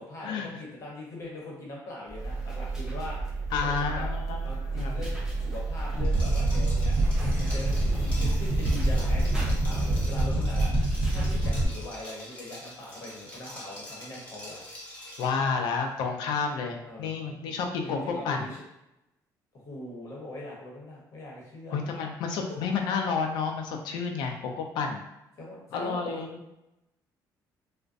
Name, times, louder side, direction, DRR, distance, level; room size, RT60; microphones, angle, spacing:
voice 1, 0.1-4.1 4.4-5.1 5.4-7.0 7.4-10.7 11.1-14.6 16.9-17.2 17.8-18.6 19.5-21.8 25.4-26.2, left 1 dB, 45° left, -3 dB, 0.9 m, -41 dB
sound 1, 2.1-12.0, right 3 dB, 5° right, 0.5 m, -31 dB
voice 2, 3.5-5.0 15.2-18.5 21.7-25.0 25.7-26.4, left 5 dB, 80° left, 3 dB, 0.4 m, -30 dB
sound 2, 5.9-11.7, right 1 dB, 45° right, 0.6 m, -27 dB
Liquid, 6.0-15.4, left 1 dB, 15° left, 0.9 m, -45 dB
2.4 x 2.1 x 2.5 m, 0.89 s
cardioid pair, 130°, 7 cm